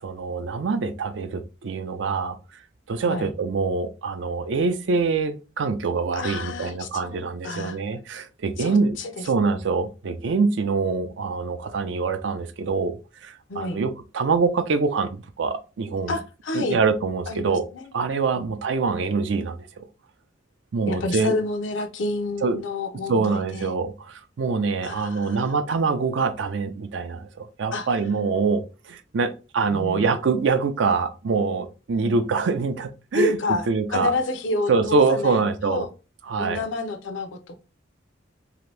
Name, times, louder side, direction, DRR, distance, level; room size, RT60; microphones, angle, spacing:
voice 1, 0.0-2.4 2.9-9.0 9.2-16.1 16.5-17.6 17.9-19.8 20.7-21.4 22.4-22.6 23.1-33.4 33.7-34.1 34.7-35.9 36.3-36.6, right 4 dB, 70° right, 0.4 m, -24 dB
voice 2, 6.1-7.8 8.6-9.3 9.6-9.7 13.5-13.8 16.1-16.8 17.3-17.9 18.4-18.5 20.9-23.7 24.8-25.5 27.7-27.9 29.7-30.1 33.1-33.6 33.9-35.9 36.4-37.6, left 2 dB, 85° left, 0.5 m, -29 dB
2.8 x 2.5 x 3.2 m
head